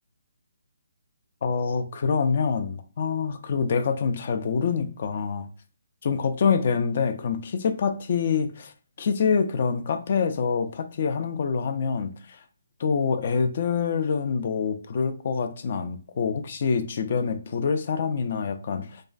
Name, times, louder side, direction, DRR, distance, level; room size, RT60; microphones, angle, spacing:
voice 1, 1.4-5.5 6.0-8.7 9.0-12.1 12.8-19.0, left 5 dB, 50° left, 0.3 m, -26 dB
2.4 x 2.2 x 2.4 m
hypercardioid pair, 150°, 0 cm